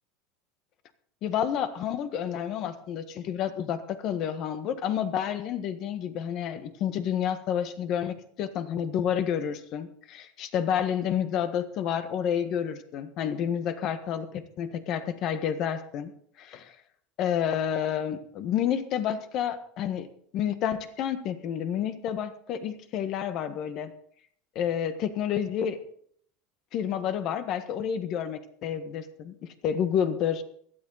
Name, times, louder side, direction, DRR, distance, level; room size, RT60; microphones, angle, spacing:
voice 1, 1.2-16.1 16.4-16.7 17.2-20.1 20.3-23.9 24.5-25.8 26.7-30.4, left 9 dB, 50° left, 11 dB, 1.5 m, -29 dB
16.0 x 13.0 x 4.1 m, 0.64 s
supercardioid pair, 135°, 0 cm